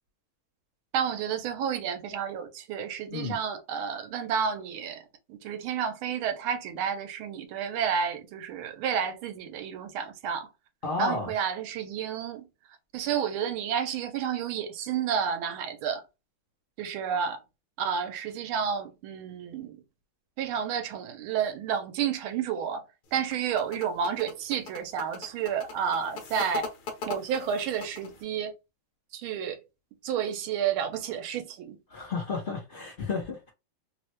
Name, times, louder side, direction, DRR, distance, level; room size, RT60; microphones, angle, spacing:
voice 1, 0.9-5.0 5.3-10.5 11.0-12.5 12.9-16.0 16.8-17.4 17.8-19.8 20.4-22.8 23.1-26.7 27.1-28.5 29.1-29.6 30.0-31.8, right 7 dB, 85° right, 1.5 m, -30 dB
voice 2, 10.8-11.3 31.9-33.5, left 4 dB, 85° left, 0.4 m, -32 dB
sound 1, 23.1-28.2, left 4 dB, 60° left, 1.2 m, -40 dB
3.6 x 2.1 x 2.9 m
omnidirectional pair, 2.3 m